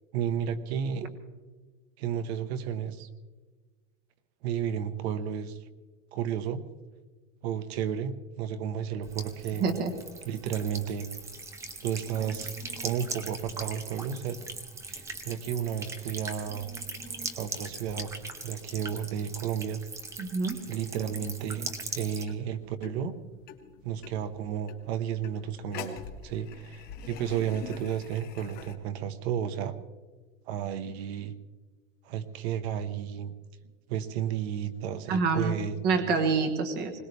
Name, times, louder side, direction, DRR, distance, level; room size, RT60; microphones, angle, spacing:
voice 1, 0.1-1.2 2.0-3.1 4.4-5.6 6.1-6.6 7.4-9.6 10.2-11.1 11.8-14.4 14.9-16.7 17.3-18.1 18.4-19.8 20.7-23.1 23.8-29.8 30.5-31.3 32.0-33.3 33.9-35.8 36.0-36.1, right 9 dB, 55° right, 10 dB, 1.2 m, -32 dB
Buzz / Water tap faucet / Trickle dribble, 9.0-22.2, right 3 dB, 10° right, 0.5 m, -40 dB
voice 2, 9.6-9.9 20.2-20.6 35.1-35.6 35.8-36.9, right 4 dB, 25° right, 6 dB, 1.4 m, -26 dB
sound 1, 22.0-28.7, left 7 dB, 25° left, 1.2 m, -45 dB
21.5 x 19.5 x 3.4 m, 1.4 s
supercardioid pair, 170°, 38 cm